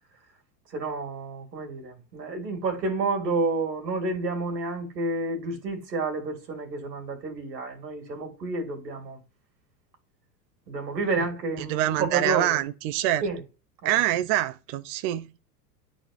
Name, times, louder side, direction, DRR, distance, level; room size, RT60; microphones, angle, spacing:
voice 1, 0.7-9.2 10.7-12.6 13.2-13.4 13.8-14.0, right 3 dB, 85° right, 2.1 m, -30 dB
voice 2, 11.6-13.2 13.8-15.4, right 14 dB, 40° right, 0.4 m, -25 dB
10.0 x 4.1 x 2.4 m
hypercardioid pair, 100°, 48 cm